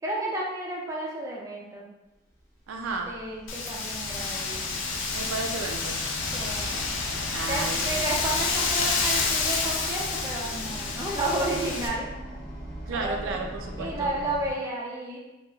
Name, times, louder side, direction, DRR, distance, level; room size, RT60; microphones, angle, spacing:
voice 1, 0.0-1.9 3.1-4.7 6.3-6.9 7.5-12.1 12.9-13.4 13.8-15.2, right 1 dB, 15° right, -3 dB, 0.4 m, -32 dB
sound 1, 2.4-14.5, equal, 15° left, 0.8 m, -41 dB
voice 2, 2.7-3.1 5.1-6.0 7.3-7.9 12.9-14.1, right 3 dB, 85° right, 2 dB, 0.4 m, -33 dB
Wind, 3.5-11.9, left 4 dB, 70° left, 0.4 m, -29 dB
3.0 x 2.3 x 2.2 m, 0.99 s
head